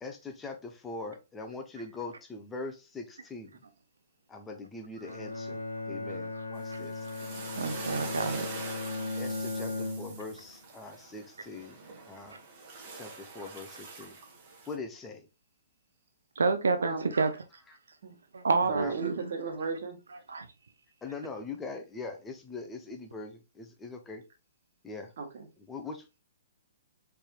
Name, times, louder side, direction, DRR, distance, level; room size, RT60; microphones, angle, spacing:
voice 1, 0.0-3.6 4.3-7.1 9.2-11.8 12.0-12.4 12.9-14.2 14.7-15.3 16.9-17.0 17.7-17.8 18.6-19.1 21.0-24.2 24.8-25.1 25.6-26.2, left 3 dB, 15° left, 0.7 m, -42 dB
Bowed string instrument, 5.0-10.5, left 3 dB, 85° left, 0.7 m, -37 dB
sound 1, 6.5-14.7, right 4 dB, 35° right, 1.3 m, -44 dB
voice 2, 7.6-8.5 16.4-17.3 18.3-19.2 20.3-20.5, right 4 dB, 85° right, 0.5 m, -28 dB
voice 3, 18.5-20.0 25.2-25.5, right 4 dB, 60° right, 1.3 m, -34 dB
4.4 x 3.4 x 2.3 m
hypercardioid pair, 135°, 0 cm